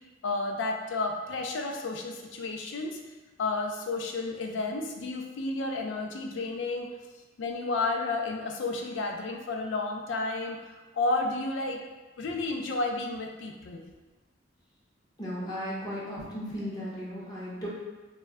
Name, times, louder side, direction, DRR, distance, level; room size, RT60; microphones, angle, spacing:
voice 1, 0.2-3.0 3.4-6.9 7.4-10.6 10.9-11.8 12.2-13.8, left 3 dB, 75° left, 2 dB, 0.4 m, -31 dB
voice 2, 15.2-17.7, equal, 20° left, -7 dB, 0.5 m, -36 dB
2.1 x 2.1 x 3.5 m, 1.3 s
head